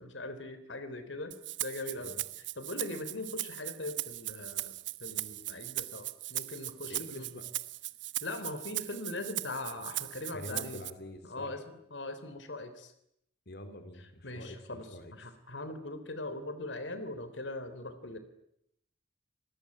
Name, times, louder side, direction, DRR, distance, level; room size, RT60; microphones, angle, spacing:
voice 1, 0.0-4.7 5.0-7.3 8.2-10.8 11.2-11.6 11.9-12.9 14.0-18.2, left 2 dB, 85° left, 10 dB, 3.6 m, -41 dB
Rattle (instrument), 1.3-10.9, right 16 dB, 80° right, 1.1 m, -39 dB
voice 2, 6.9-7.5 10.3-11.6 13.5-15.1, left 1 dB, 60° left, 9 dB, 3.6 m, -46 dB
29.5 x 21.0 x 9.7 m, 0.78 s
head